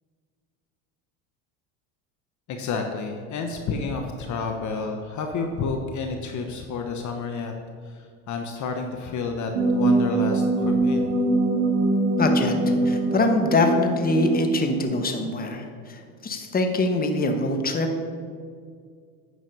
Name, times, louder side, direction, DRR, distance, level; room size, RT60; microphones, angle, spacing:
voice 1, 2.5-7.5 7.8-11.1, left 4 dB, 45° left, 4 dB, 1.0 m, -30 dB
sound 1, 9.5-14.8, right 2 dB, 70° right, 1.5 m, -23 dB
voice 2, 12.2-17.9, left 2 dB, 20° left, 5 dB, 1.2 m, -24 dB
9.5 x 6.2 x 5.4 m, 2.1 s
supercardioid pair, 95°, 42 cm